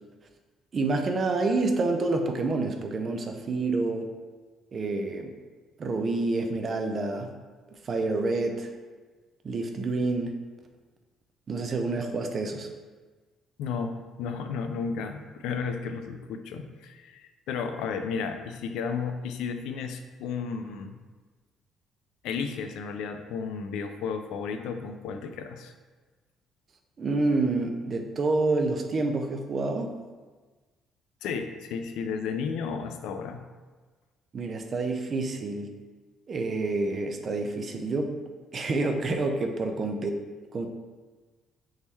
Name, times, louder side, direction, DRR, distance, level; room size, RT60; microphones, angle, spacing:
voice 1, 0.7-4.1 4.7-5.3 5.8-7.3 7.8-8.7 9.4-10.4 11.5-12.7 27.0-30.0 34.3-35.7 36.3-38.1 38.5-40.2 40.5-40.7, right 3 dB, 30° right, 5 dB, 0.4 m, -28 dB
voice 2, 13.6-21.0 22.2-25.7 31.2-33.5, left 5 dB, 85° left, 7 dB, 0.4 m, -33 dB
3.6 x 3.1 x 4.1 m, 1.3 s
cardioid pair, 170°, 0 cm